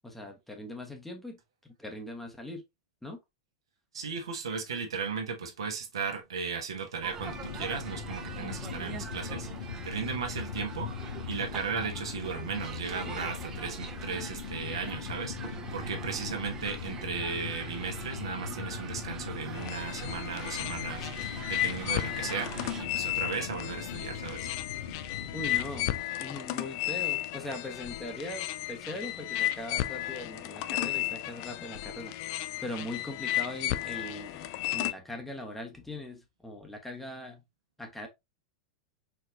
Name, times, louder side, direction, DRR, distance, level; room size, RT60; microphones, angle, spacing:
voice 1, 0.0-2.6 3.0-3.2 25.3-37.4 37.8-38.1, left 1 dB, 5° left, 1.1 m, -41 dB
voice 2, 3.9-10.9 11.3-22.5 22.8-24.5, right 5 dB, 70° right, 1.3 m, -36 dB
sound 1, 7.0-22.8, right 6 dB, 25° right, 0.9 m, -43 dB
sound 2, 7.2-26.0, left 7 dB, 65° left, 0.9 m, -40 dB
sound 3, 19.5-34.9, left 15 dB, 45° left, 0.4 m, -34 dB
4.5 x 4.5 x 2.5 m
figure-of-eight pair, 95°, 3 cm